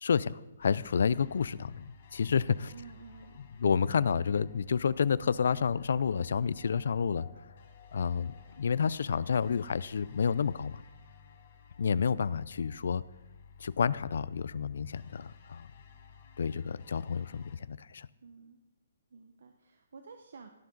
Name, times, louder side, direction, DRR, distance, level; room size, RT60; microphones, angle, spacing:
voice 1, 0.0-2.7 3.6-7.3 7.9-10.8 11.8-13.0 13.6-15.7 16.4-18.1, left 6 dB, 70° left, 19 dB, 0.4 m, -30 dB
sound 1, 0.6-17.6, left 6 dB, 50° left, 1.7 m, -55 dB
voice 2, 2.7-3.4 18.2-18.6 19.1-20.5, right 5 dB, 70° right, 6 dB, 0.9 m, -51 dB
17.0 x 7.5 x 3.9 m, 1.1 s
hypercardioid pair, 160°, 0 cm